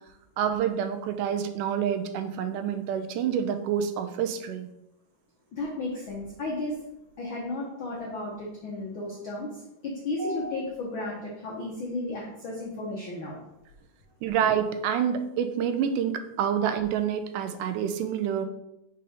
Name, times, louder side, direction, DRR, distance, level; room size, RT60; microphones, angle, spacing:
voice 1, 0.4-4.7 10.2-10.6 14.2-18.5, right 8 dB, 85° right, 8 dB, 2.1 m, -28 dB
voice 2, 5.5-6.8 7.2-9.5 9.8-13.4, left 2 dB, 75° left, -3 dB, 1.1 m, -34 dB
5.5 x 4.1 x 4.9 m, 0.86 s
omnidirectional pair, 3.6 m